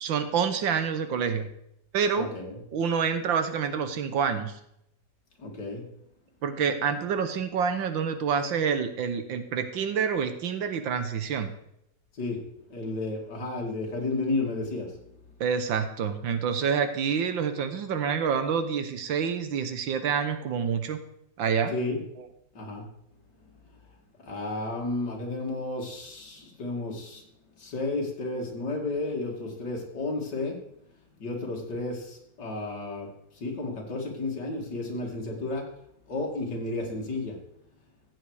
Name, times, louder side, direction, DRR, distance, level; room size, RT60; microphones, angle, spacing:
voice 1, 0.0-1.5 1.9-2.3 2.7-4.5 6.4-11.5 15.4-21.0 21.4-21.7 22.2-22.3, right 6 dB, 90° right, 10 dB, 1.9 m, -27 dB
voice 2, 2.1-2.6 5.4-5.8 12.2-12.4 12.7-14.9 21.7-22.0 22.5-22.9 24.2-27.2 27.6-30.6 31.2-33.1 33.4-35.6 36.1-37.4, left 2 dB, 65° left, -1 dB, 3.1 m, -32 dB
15.0 x 8.1 x 4.9 m, 0.76 s
omnidirectional pair, 2.0 m